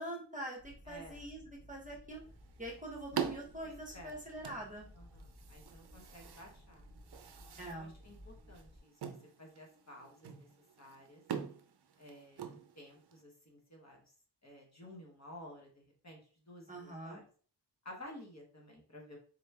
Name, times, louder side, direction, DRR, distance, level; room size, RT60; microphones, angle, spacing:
voice 1, 0.0-1.4 1.7-2.2 2.6-4.9 7.6-7.9 16.7-17.2, right 1 dB, 20° right, -2 dB, 0.9 m, -44 dB
sound 1, 0.6-8.8, equal, 5° left, 1.1 m, -57 dB
voice 2, 0.8-1.2 3.9-4.2 4.9-6.9 7.7-8.9 9.4-10.5 10.8-11.2 12.0-14.1 14.4-17.2 17.8-19.2, left 1 dB, 35° left, 0 dB, 1.3 m, -53 dB
sound 2, 2.1-13.2, right 8 dB, 60° right, 0.6 m, -45 dB
3.9 x 3.0 x 3.4 m, 0.43 s
wide cardioid pair, 90°, 44 cm